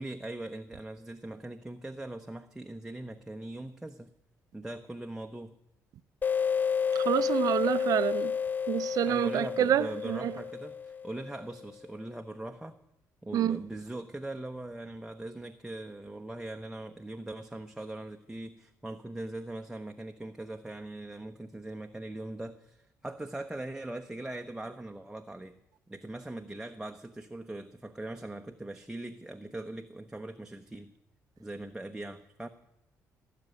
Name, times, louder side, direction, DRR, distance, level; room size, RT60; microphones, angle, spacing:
voice 1, 0.0-4.1 4.5-5.6 9.1-12.8 13.2-25.6 25.9-30.9 31.4-32.5, right 1 dB, 10° right, 0.9 m, -41 dB
sound 1, 6.2-11.5, left 7 dB, 30° left, 0.6 m, -31 dB
voice 2, 6.9-8.3 8.7-10.4 13.3-13.6, right 11 dB, 70° right, 0.5 m, -28 dB
18.0 x 6.8 x 9.5 m
supercardioid pair, 70°, 6 cm